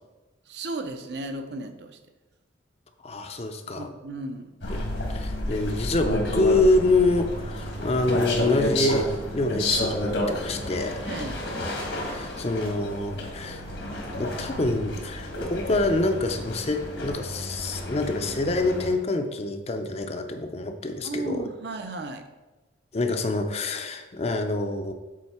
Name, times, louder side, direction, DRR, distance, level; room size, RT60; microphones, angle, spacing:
voice 1, 0.5-2.0 3.7-4.5 11.0-11.4 21.0-22.3, right 2 dB, 65° right, 6 dB, 0.7 m, -35 dB
voice 2, 3.0-3.9 5.1-11.0 12.1-13.6 14.2-21.4 22.9-24.9, left 2 dB, 35° left, 6 dB, 0.5 m, -26 dB
sound 1, 4.6-18.9, left 1 dB, 75° left, 1.5 m, -31 dB
7.6 x 4.1 x 4.3 m, 1.1 s
head